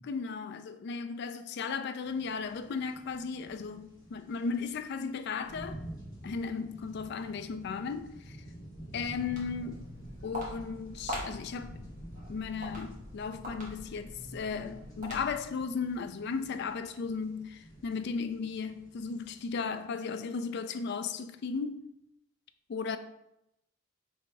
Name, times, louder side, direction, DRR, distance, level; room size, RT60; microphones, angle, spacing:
voice 1, 0.0-5.8 6.2-8.4 8.9-9.9 10.2-11.9 12.3-21.8 22.7-23.0, left 5 dB, 55° left, 0.3 m, -36 dB
sound 1, 2.0-19.8, right 1 dB, 20° left, 1.4 m, -50 dB
Walk footsteps, 9.1-15.6, equal, 40° right, 1.1 m, -43 dB
3.5 x 3.0 x 4.5 m
head